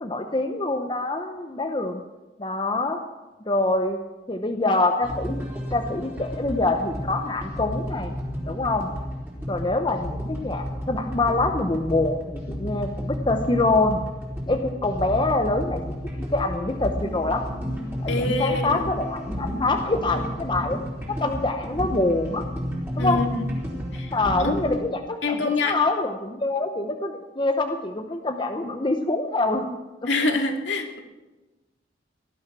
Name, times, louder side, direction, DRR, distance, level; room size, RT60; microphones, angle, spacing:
voice 1, 0.0-2.0 2.4-3.0 3.5-4.0 4.3-5.4 5.7-8.1 8.5-8.9 9.5-14.0 14.5-15.8 16.3-17.5 18.0-20.8 21.1-22.5 23.0-23.2 24.1-29.8, left 2 dB, 25° left, 4 dB, 0.9 m, -25 dB
sound 1, 5.0-24.8, equal, 10° right, 4.1 m, -32 dB
voice 2, 18.1-18.8 23.0-23.5 23.9-24.1 24.4-24.8 25.2-25.8 30.1-31.0, left 3 dB, 70° left, 3 dB, 2.3 m, -26 dB
18.5 x 12.0 x 6.1 m, 1.1 s
head